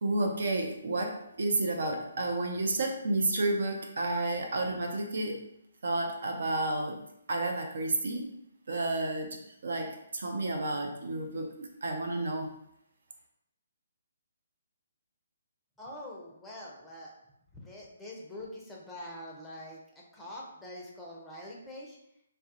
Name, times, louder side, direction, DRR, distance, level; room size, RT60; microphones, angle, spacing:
voice 1, 0.0-5.4 5.8-7.0 7.3-8.3 8.7-12.5, right 2 dB, 65° right, 3 dB, 0.4 m, -31 dB
voice 2, 15.8-17.1 17.5-22.0, left 1 dB, 5° left, -4 dB, 0.5 m, -44 dB
2.2 x 2.0 x 2.7 m, 0.76 s
figure-of-eight pair, 135°, 0 cm